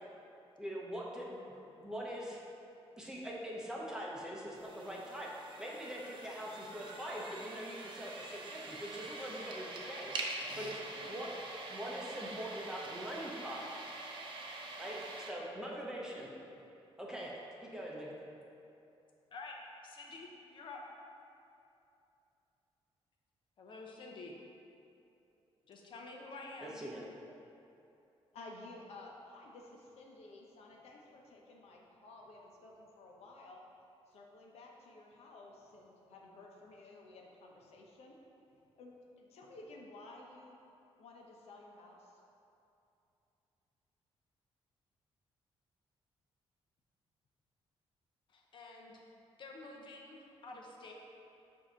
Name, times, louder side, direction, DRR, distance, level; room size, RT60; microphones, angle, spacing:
voice 1, 0.6-2.4 3.0-5.3 5.6-10.1 10.6-10.7 11.1-11.3 11.7-13.6 14.8-16.3 17.0-18.1 26.6-27.1, equal, 5° right, -4 dB, 0.8 m, -43 dB
sound 1, 4.6-15.3, right 2 dB, 50° right, 0.7 m, -45 dB
voice 2, 19.3-20.8 23.6-24.3 25.6-26.8 48.3-49.0 49.4-50.9, left 3 dB, 50° left, 0 dB, 0.8 m, -49 dB
voice 3, 28.3-33.6 34.1-38.2 38.8-40.6 41.0-42.2, left 2 dB, 80° left, -1 dB, 0.9 m, -54 dB
7.5 x 2.8 x 5.6 m, 2.7 s
wide cardioid pair, 160°, 10 cm